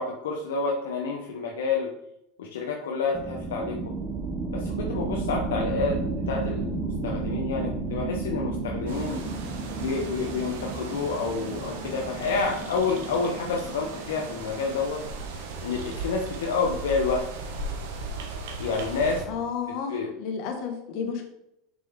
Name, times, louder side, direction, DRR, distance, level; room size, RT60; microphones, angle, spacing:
voice 1, 0.0-1.9 2.4-3.9 4.5-9.2 9.7-15.0 15.3-17.3 18.6-19.2 19.7-20.1, left 4 dB, 80° left, 0 dB, 0.9 m, -29 dB
sound 1, 3.1-15.4, right 3 dB, 30° right, 0.9 m, -33 dB
sound 2, 8.9-19.2, right 3 dB, 75° right, 1.1 m, -37 dB
voice 2, 19.3-21.2, left 6 dB, 60° left, 4 dB, 1.5 m, -32 dB
6.4 x 5.3 x 3.6 m, 0.81 s
hypercardioid pair, 95°, 0 cm